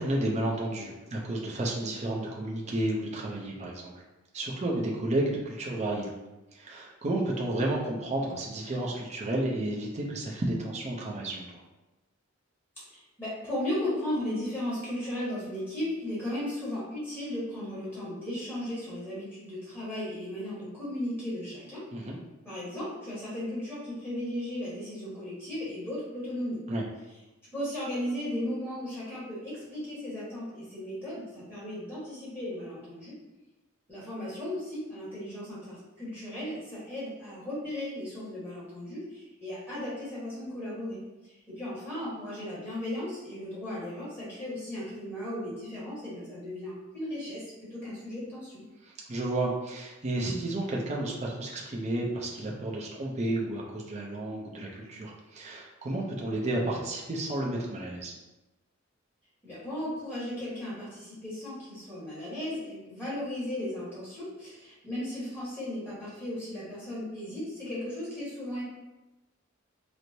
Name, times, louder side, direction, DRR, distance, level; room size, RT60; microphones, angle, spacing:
voice 1, 0.0-3.9 4.3-6.1 6.5-11.5 21.9-22.2 26.7-26.8 49.1-58.1, right 1 dB, 35° right, -3 dB, 0.5 m, -31 dB
voice 2, 12.9-21.8 22.4-26.6 27.5-33.1 33.9-41.0 41.2-48.6 59.4-68.6, left 1 dB, 10° left, -10 dB, 1.3 m, -36 dB
4.5 x 2.0 x 2.7 m, 1.0 s
head